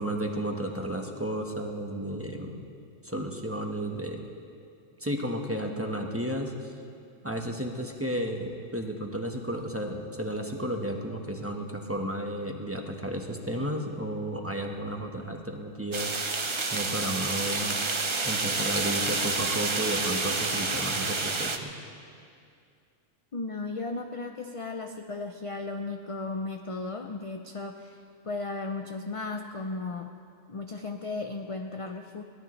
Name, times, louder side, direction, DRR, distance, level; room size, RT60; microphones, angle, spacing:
voice 1, 0.0-2.6 3.0-4.2 5.0-6.7 7.2-16.1 16.7-17.8 18.2-21.7, right 1 dB, 10° right, 1 dB, 1.1 m, -33 dB
sound 1, 15.9-21.6, right 3 dB, 30° right, 0.7 m, -29 dB
voice 2, 23.3-30.1 30.5-32.2, left 3 dB, 40° left, 4 dB, 0.5 m, -35 dB
22.5 x 17.5 x 3.2 m, 2.4 s
omnidirectional pair, 1.3 m